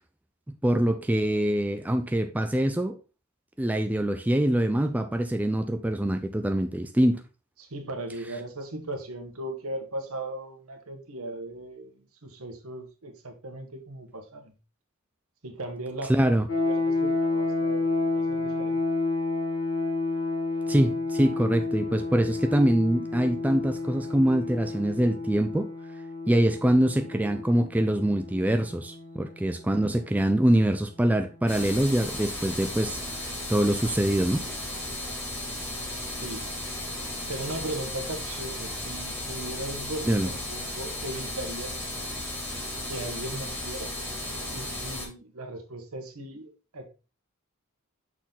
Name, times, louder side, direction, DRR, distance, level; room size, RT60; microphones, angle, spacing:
voice 1, 0.6-3.0 3.6-7.2 16.1-16.4 20.7-25.7 26.3-34.5 40.1-40.3, right 1 dB, 5° right, 0.3 m, -24 dB
voice 2, 7.6-14.5 15.4-18.8 36.1-36.4 37.3-41.9 42.9-43.9 44.5-46.9, right 1 dB, 70° right, 1.3 m, -38 dB
sound 1, 16.5-30.3, left 3 dB, 60° left, 2.2 m, -30 dB
sound 2, 31.5-45.1, left 1 dB, 10° left, 1.9 m, -35 dB
6.2 x 4.2 x 3.8 m
head